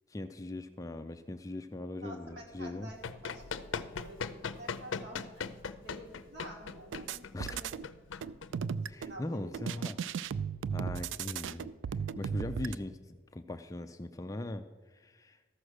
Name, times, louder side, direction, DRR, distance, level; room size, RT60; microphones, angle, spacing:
voice 1, 0.1-2.9 7.3-7.6 8.9-10.0 10.7-11.7 12.2-14.6 14.9-15.4, left 2 dB, 15° left, 8 dB, 0.3 m, -40 dB
voice 2, 2.0-5.5 5.8-7.7 8.8-9.9, right 1 dB, 60° right, 0 dB, 2.3 m, -50 dB
Run, 2.7-9.1, left 5 dB, 80° left, 0.5 m, -40 dB
sound 1, 6.9-7.8 8.2-9.2 9.5-12.7, right 7 dB, 75° right, 0.3 m, -36 dB
13.5 x 6.3 x 6.4 m, 1.3 s
head